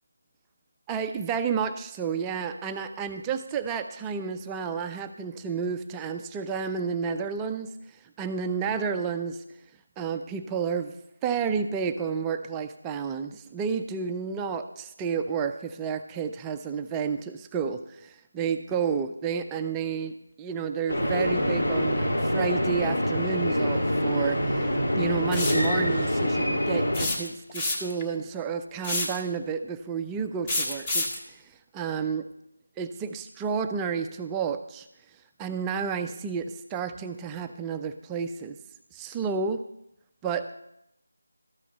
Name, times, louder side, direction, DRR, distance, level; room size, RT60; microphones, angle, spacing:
voice 1, 0.9-7.7 8.2-9.4 10.0-10.9 11.2-32.3 32.8-34.9 35.4-38.6 38.9-39.6 40.2-40.5, right 6 dB, 10° right, 7 dB, 0.4 m, -31 dB
sound 1, 20.9-27.1, left 1 dB, 60° left, 3.2 m, -25 dB
sound 2, 25.3-25.7 26.9-28.0 28.8-29.2 30.5-31.2, left 2 dB, 20° left, 1.1 m, -28 dB
13.0 x 5.9 x 6.9 m, 0.81 s
figure-of-eight pair, 170°, 0 cm